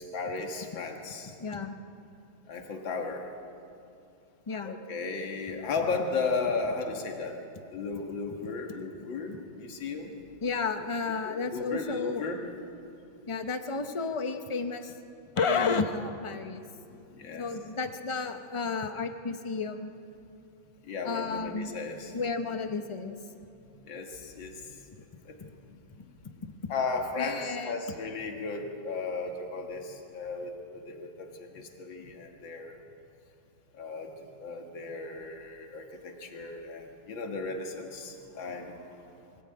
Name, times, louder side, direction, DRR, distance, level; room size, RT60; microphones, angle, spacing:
voice 1, 0.0-1.3 2.5-3.3 4.6-7.4 7.7-10.2 11.2-12.4 16.8-17.6 20.8-22.2 23.9-24.7 25.3-25.4 26.7-32.8 33.7-34.1 34.4-39.0, left 4 dB, 70° left, 2 dB, 2.6 m, -35 dB
voice 2, 1.4-1.8 4.5-4.8 10.4-12.2 13.3-15.0 15.4-16.6 17.4-19.9 21.1-21.8 22.1-23.2 25.4-25.5 26.2-26.5 27.2-27.8, left 4 dB, 30° left, 7 dB, 0.5 m, -32 dB
23.5 x 16.0 x 8.8 m, 2.6 s
omnidirectional pair, 2.2 m